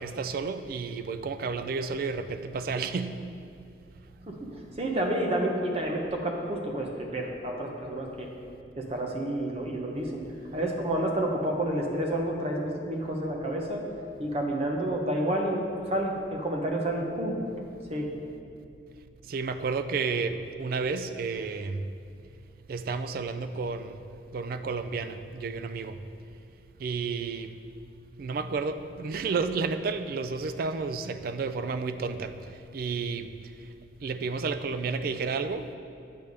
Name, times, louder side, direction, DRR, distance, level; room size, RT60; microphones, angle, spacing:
voice 1, 0.0-3.1 19.3-21.8 22.7-24.0 24.3-26.0 26.8-27.5 28.2-32.3 32.7-33.3 34.0-35.7, right 4 dB, 55° right, 10 dB, 0.3 m, -31 dB
voice 2, 4.8-8.3 8.8-10.2 10.5-13.8 14.2-17.4 17.9-18.1, right 1 dB, 35° right, 1 dB, 0.8 m, -29 dB
8.4 x 3.3 x 6.5 m, 2.5 s
head